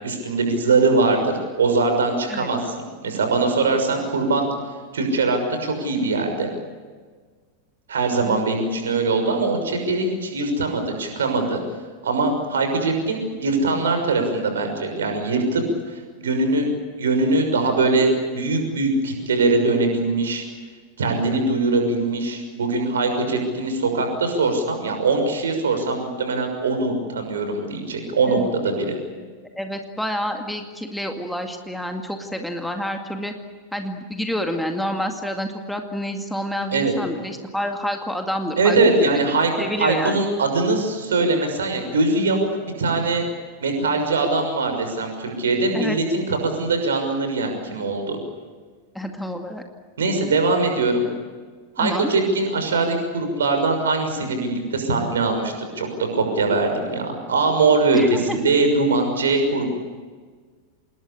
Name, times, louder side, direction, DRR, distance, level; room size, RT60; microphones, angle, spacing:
voice 1, 0.0-4.5 4.9-6.5 7.9-11.6 12.0-15.6 15.9-16.6 17.0-20.4 21.0-28.9 36.7-36.9 38.6-39.5 39.8-42.5 42.8-43.3 43.6-48.2 50.0-51.1 51.8-55.9 56.1-58.0 58.3-59.7, right 3 dB, 65° right, 5 dB, 6.2 m, -22 dB
voice 2, 28.0-28.5 29.2-29.3 29.5-33.3 33.7-39.2 39.6-40.2 45.7-46.0 48.9-49.6 51.8-52.1 57.9-58.4, equal, ahead, 4 dB, 2.2 m, -28 dB
27.0 x 21.0 x 8.6 m, 1.5 s
figure-of-eight pair, 90°, 0 cm